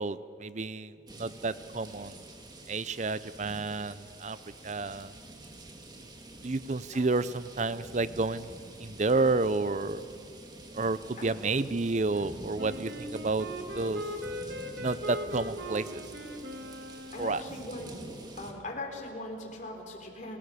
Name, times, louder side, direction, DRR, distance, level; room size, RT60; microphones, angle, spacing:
voice 1, 0.0-2.2 2.7-4.4 4.6-5.1 6.4-8.5 8.8-10.0 10.7-13.5 13.7-14.0 14.8-16.0 17.2-17.4, right 3 dB, 40° right, 15 dB, 0.6 m, -30 dB
sound 1, 1.1-18.5, right 1 dB, 20° right, 1.9 m, -47 dB
Wind instrument woodwind instrument, 12.6-17.7, equal, 55° right, 1.9 m, -40 dB
voice 2, 17.1-17.9 18.4-20.4, left 1 dB, 40° left, 1 dB, 4.0 m, -40 dB
29.5 x 17.5 x 6.9 m, 2.7 s
head